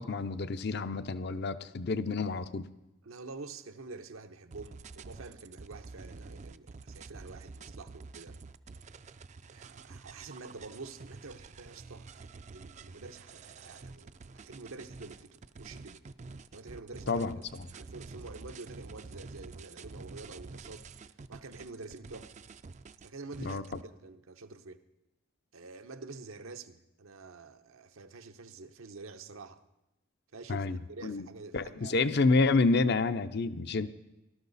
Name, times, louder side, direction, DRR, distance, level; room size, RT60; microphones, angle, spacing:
voice 1, 0.0-2.7 17.1-17.7 23.4-23.6 30.5-30.8 31.0-31.2 31.5-33.9, left 3 dB, 50° left, 0.6 m, -29 dB
voice 2, 3.0-8.4 9.5-16.0 16.5-22.3 23.0-24.8 25.5-29.6 30.3-32.3, right 3 dB, 80° right, 0.9 m, -48 dB
sound 1, 4.5-23.8, right 4 dB, 35° right, 0.4 m, -48 dB
18.5 x 12.5 x 4.1 m
head